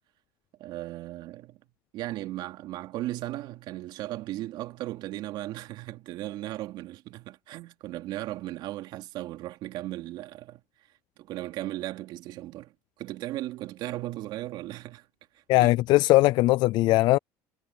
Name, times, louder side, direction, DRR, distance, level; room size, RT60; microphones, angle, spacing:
voice 1, 0.6-1.6 1.9-10.6 11.2-12.7 13.0-15.1 15.3-15.8, right 15 dB, 60° right, 2.9 m, -36 dB
voice 2, 15.5-17.2, left 19 dB, 60° left, 0.4 m, -20 dB
supercardioid pair, 115°, 9 cm